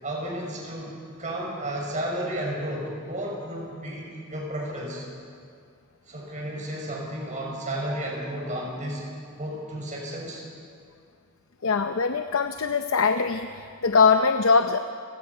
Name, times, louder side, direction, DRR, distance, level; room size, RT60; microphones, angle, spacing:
voice 1, 0.0-5.1 6.1-9.0 9.4-10.4, right 1 dB, 35° right, -2 dB, 6.2 m, -32 dB
voice 2, 11.6-14.8, left 5 dB, 70° left, 8 dB, 0.7 m, -22 dB
30.0 x 18.5 x 5.6 m, 2.3 s
head